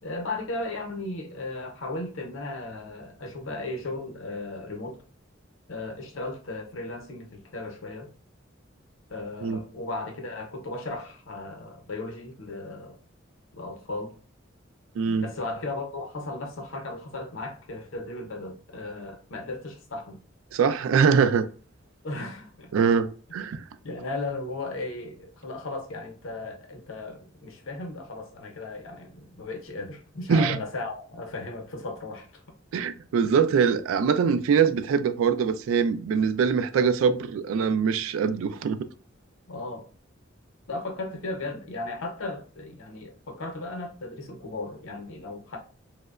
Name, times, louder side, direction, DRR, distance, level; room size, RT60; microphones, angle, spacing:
voice 1, 0.0-5.0 5.7-8.1 9.1-13.0 13.5-14.1 15.0-20.2 22.0-22.7 23.8-32.4 39.5-39.9 40.7-45.6, left 2 dB, 85° left, 0.7 m, -36 dB
voice 2, 15.0-15.3 20.5-21.5 22.7-23.6 30.3-30.6 32.7-38.9, right 6 dB, 90° right, 0.3 m, -23 dB
2.8 x 2.1 x 2.3 m
head